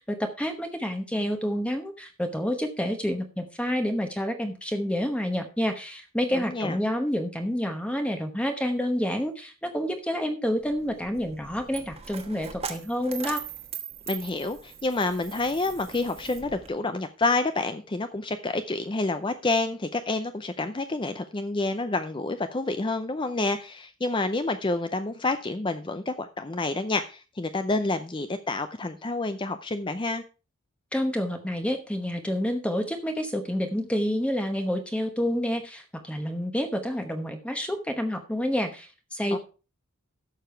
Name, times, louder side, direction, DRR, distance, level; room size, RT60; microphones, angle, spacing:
voice 1, 0.0-13.4 30.9-39.4, equal, 5° left, 5 dB, 0.9 m, -28 dB
voice 2, 6.3-6.8 14.1-30.2 39.3-39.4, left 2 dB, 20° left, 9 dB, 0.5 m, -28 dB
Coin (dropping), 10.6-16.7, right 7 dB, 30° right, 1.2 m, -40 dB
11.5 x 6.9 x 4.5 m, 0.34 s
head